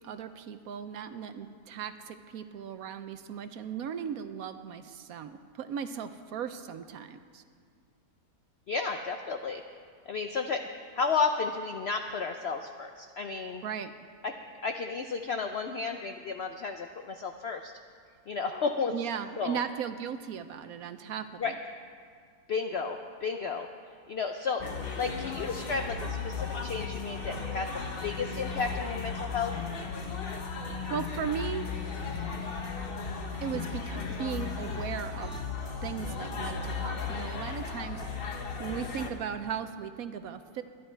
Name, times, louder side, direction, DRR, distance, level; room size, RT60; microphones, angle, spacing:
voice 1, 0.0-7.4 13.6-13.9 18.9-21.5 30.5-31.7 33.4-35.4 35.8-38.3 38.6-40.6, right 8 dB, 70° right, 10 dB, 1.0 m, -37 dB
voice 2, 8.7-9.6 10.1-13.6 14.2-14.3 14.6-17.7 18.3-18.9 19.4-19.6 21.4-21.5 22.5-23.7 24.1-24.6 25.0-27.7 28.0-29.5, left 5 dB, 70° left, 6 dB, 0.6 m, -32 dB
sound 1, 24.6-39.1, left 5 dB, 40° left, 1.1 m, -36 dB
21.5 x 10.5 x 4.5 m, 2.1 s
omnidirectional pair, 1.8 m